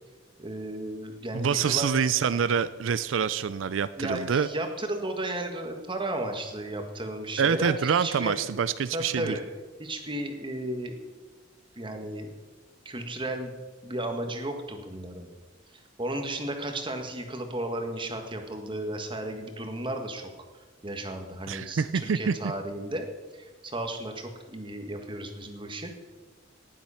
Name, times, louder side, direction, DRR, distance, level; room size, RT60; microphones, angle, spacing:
voice 1, 0.4-1.9 4.0-8.3 8.9-9.4 9.8-11.0 11.7-12.3 12.8-13.5 13.8-15.3 16.0-20.3 20.8-23.1 23.3-25.9, right 1 dB, 25° right, 5 dB, 1.5 m, -34 dB
voice 2, 1.3-4.5 7.4-9.3 21.5-22.3, right 6 dB, 90° right, 15 dB, 0.4 m, -26 dB
18.5 x 7.6 x 5.7 m, 1.3 s
head